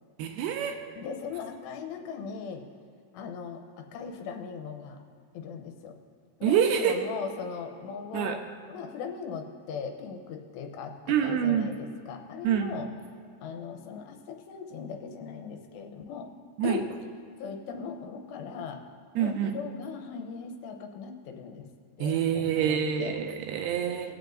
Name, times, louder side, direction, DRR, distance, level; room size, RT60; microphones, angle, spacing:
voice 1, 0.2-0.8 6.4-6.9 8.1-8.4 11.1-11.7 12.4-12.8 16.6-16.8 19.2-19.5 22.0-24.1, right 9 dB, 80° right, 5 dB, 2.5 m, -26 dB
voice 2, 1.0-2.7 3.1-5.0 5.3-5.9 6.4-8.4 8.7-12.9 13.4-16.3 16.6-16.9 17.4-18.8 19.2-21.7 22.0-23.1 24.0-24.1, left 6 dB, 90° left, 4 dB, 3.0 m, -39 dB
19.5 x 7.9 x 2.6 m, 2.3 s
omnidirectional pair, 4.8 m